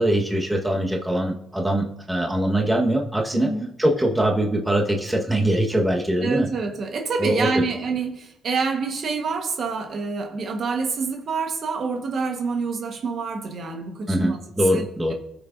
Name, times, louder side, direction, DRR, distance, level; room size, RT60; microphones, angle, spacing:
voice 1, 0.0-3.5 3.8-6.5 7.2-7.6 14.1-15.1, right 1 dB, 10° right, 0 dB, 1.3 m, -22 dB
voice 2, 3.3-3.7 6.2-14.4 14.7-14.8, right 4 dB, 60° right, 4 dB, 1.3 m, -27 dB
16.5 x 6.2 x 2.6 m, 0.79 s
cardioid pair, 90°, 0 cm